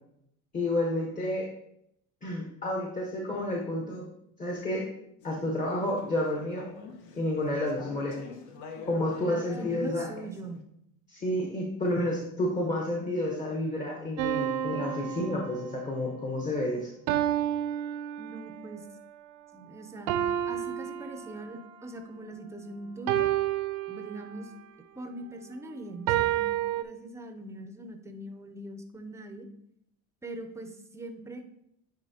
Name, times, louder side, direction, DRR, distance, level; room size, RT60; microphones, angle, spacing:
voice 1, 0.5-1.5 2.2-4.1 4.4-4.8 5.2-6.7 7.1-8.2 8.9-10.1 11.1-16.9, left 1 dB, 20° left, -1 dB, 1.0 m, -30 dB
Conversation / Chatter, 5.2-10.6, left 5 dB, 60° left, 1.1 m, -46 dB
voice 2, 9.3-10.7 18.2-18.8 19.5-20.2 20.5-23.3 23.9-24.5 24.9-29.5 30.2-31.4, right 1 dB, 10° right, 6 dB, 0.6 m, -42 dB
sound 1, 14.2-16.0 17.1-18.7 20.1-21.7 23.1-24.6 26.1-26.8, right 11 dB, 80° right, 0.6 m, -30 dB
9.4 x 4.3 x 2.8 m, 0.76 s
cardioid pair, 140°, 34 cm